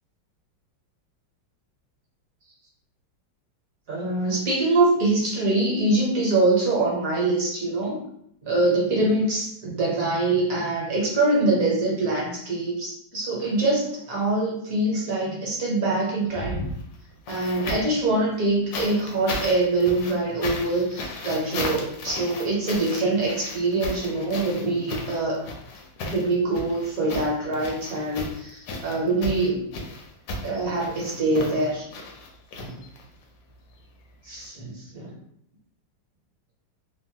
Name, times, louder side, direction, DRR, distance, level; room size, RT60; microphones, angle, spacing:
voice 1, 3.9-8.0 8.4-16.6 17.3-25.4 26.0-29.6 30.4-31.9 32.6-32.8 34.2-35.1, right 2 dB, 55° right, -4 dB, 1.1 m, -24 dB
sound 1, 16.3-18.0 18.7-33.2 34.4-34.5, left 2 dB, 70° left, 1.0 m, -35 dB
3.3 x 2.1 x 2.7 m, 0.72 s
omnidirectional pair, 2.0 m